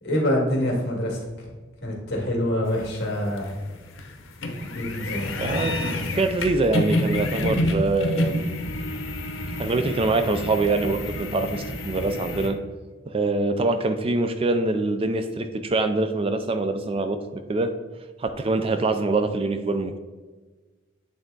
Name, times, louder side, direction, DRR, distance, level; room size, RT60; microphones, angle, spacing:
voice 1, 0.0-1.2 1.8-3.5 4.7-5.3, left 1 dB, 55° left, -1 dB, 1.9 m, -25 dB
sound 1, 2.7-12.5, left 1 dB, 90° left, 0.8 m, -29 dB
voice 2, 5.4-5.8 6.1-8.5 9.6-12.6 13.1-17.7 18.2-20.0, right 3 dB, 30° right, 8 dB, 0.3 m, -24 dB
8.8 x 3.5 x 3.9 m, 1.3 s
head